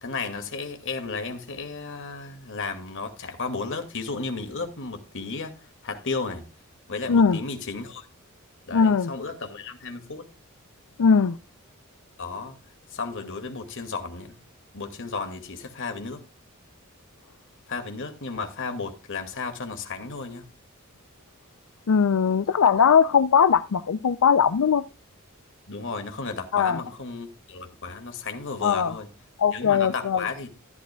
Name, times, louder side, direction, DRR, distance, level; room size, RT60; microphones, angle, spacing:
voice 1, 0.0-6.4 6.9-8.1 8.7-10.3 12.2-12.6 12.9-14.4 14.7-16.2 17.7-20.5 25.7-29.1 29.5-30.5, left 4 dB, 60° left, 2.2 m, -34 dB
voice 2, 7.1-7.4 8.7-9.1 11.0-11.4 21.9-24.8 26.5-26.8 28.6-29.0 29.4-30.3, left 6 dB, 85° left, 0.5 m, -20 dB
14.5 x 11.5 x 2.3 m
head